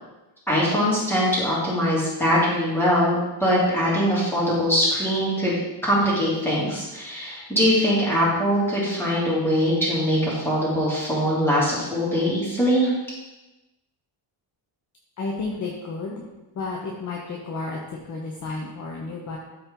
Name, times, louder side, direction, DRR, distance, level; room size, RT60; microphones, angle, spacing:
voice 1, 0.5-12.9, equal, 5° left, -7 dB, 2.9 m, -22 dB
voice 2, 15.2-16.1 16.6-17.8 18.1-19.4, left 3 dB, 40° left, -2 dB, 1.0 m, -31 dB
12.5 x 4.3 x 3.8 m, 1.1 s
cardioid pair, 155°, 47 cm